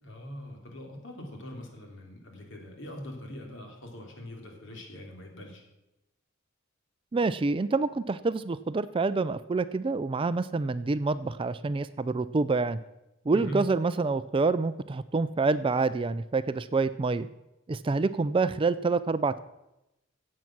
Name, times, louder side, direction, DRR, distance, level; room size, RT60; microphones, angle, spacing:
voice 1, 0.0-5.6 13.3-13.6, equal, 60° left, 1 dB, 3.2 m, -42 dB
voice 2, 7.1-12.8 13.3-17.3 17.7-19.4, right 3 dB, 25° right, 14 dB, 0.4 m, -27 dB
16.5 x 7.6 x 6.0 m, 0.92 s
head